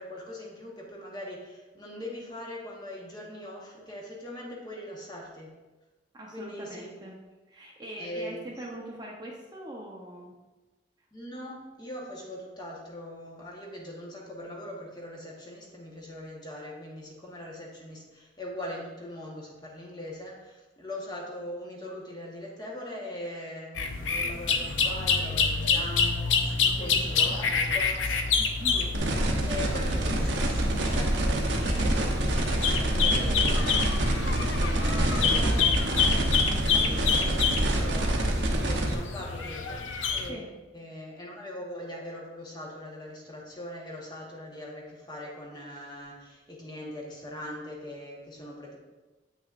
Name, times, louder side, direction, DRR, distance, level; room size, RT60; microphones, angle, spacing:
voice 1, 0.0-5.5 6.3-7.0 8.0-8.4 11.1-28.4 28.7-28.9 29.4-31.5 31.8-33.7 34.5-35.5 36.7-39.8 40.1-48.8, left 1 dB, 20° left, -2 dB, 1.2 m, -41 dB
voice 2, 6.1-7.2 7.5-10.4 26.7-27.5 28.4-28.8 34.5-36.0 40.3-40.5, right 1 dB, 20° right, -2 dB, 0.8 m, -42 dB
sound 1, 23.7-40.3, left 5 dB, 85° left, 0.6 m, -28 dB
sound 2, 28.9-38.9, right 1 dB, 75° right, 0.9 m, -26 dB
8.3 x 5.9 x 2.5 m, 1.2 s
head